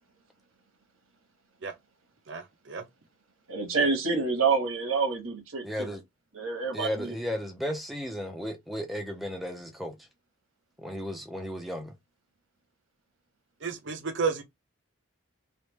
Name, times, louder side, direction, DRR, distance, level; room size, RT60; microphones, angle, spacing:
voice 1, 2.3-2.8 13.6-14.4, right 5 dB, 60° right, 0.6 m, -31 dB
voice 2, 3.5-6.0 6.3-7.1, right 4 dB, 90° right, 1.3 m, -28 dB
voice 3, 5.6-6.0 6.7-9.9 10.8-11.9, equal, ahead, 0.5 m, -34 dB
3.3 x 2.4 x 3.1 m
head